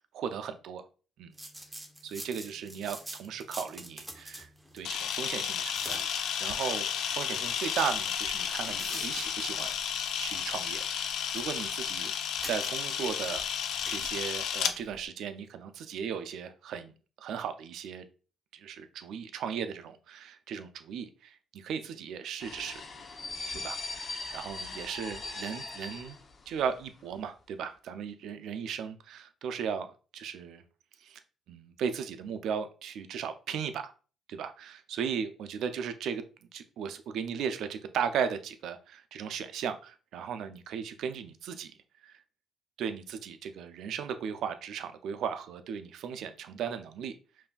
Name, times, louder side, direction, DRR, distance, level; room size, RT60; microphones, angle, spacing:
voice 1, 0.1-0.8 1.2-1.3 2.0-4.5 4.7-6.9 7.1-9.7 10.2-12.1 12.4-13.4 13.9-16.9 17.2-18.1 18.5-22.8 23.5-26.2 26.5-30.6 31.0-31.2 31.5-33.9 34.3-36.2 36.5-41.7 42.0-42.1 42.8-47.1, right 7 dB, 80° right, 0.4 m, -36 dB
sound 1, 1.3-14.2, right 1 dB, 15° right, 0.8 m, -48 dB
Camera, 4.8-14.7, left 8 dB, 80° left, 0.4 m, -32 dB
sound 2, 22.4-26.8 27.1-27.2, left 3 dB, 55° left, 0.7 m, -40 dB
5.4 x 2.6 x 2.3 m
cardioid pair, 90°, 0 cm